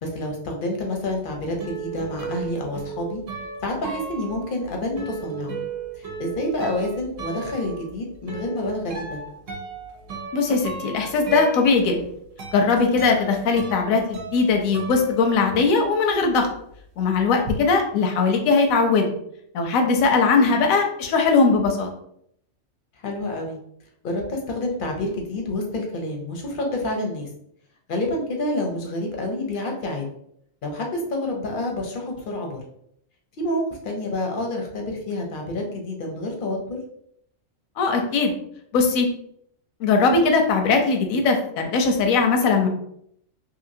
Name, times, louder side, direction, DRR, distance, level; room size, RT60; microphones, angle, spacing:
voice 1, 0.0-3.2 3.6-5.6 6.0-9.2 17.4-17.7 20.5-20.6 23.0-23.6 24.0-27.3 27.9-30.1 30.6-32.6 33.4-36.8, left 1 dB, 55° left, 2 dB, 0.6 m, -28 dB
sound 1, 1.0-15.8 16.1-17.6, right 5 dB, 70° right, 1.0 m, -36 dB
voice 2, 10.3-12.0 12.5-16.5 17.0-19.1 19.5-21.9 37.8-38.3 38.7-39.1 39.8-42.7, left 4 dB, 85° left, 3 dB, 1.0 m, -20 dB
2.8 x 2.7 x 2.6 m, 0.71 s
omnidirectional pair, 1.4 m